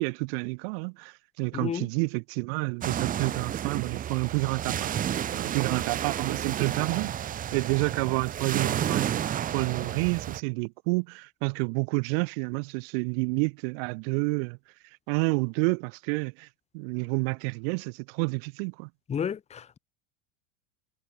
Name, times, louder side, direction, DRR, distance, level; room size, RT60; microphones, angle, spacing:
voice 1, 0.0-4.9 5.3-7.1 7.5-14.6 15.1-16.5 16.7-18.9, right 34 dB, 50° right, 1.4 m, -29 dB
voice 2, 1.5-1.9 19.1-19.8, left 7 dB, 15° left, 1.9 m, -31 dB
sound 1, 2.8-10.4, right 10 dB, 20° right, 1.4 m, -31 dB
supercardioid pair, 150°, 37 cm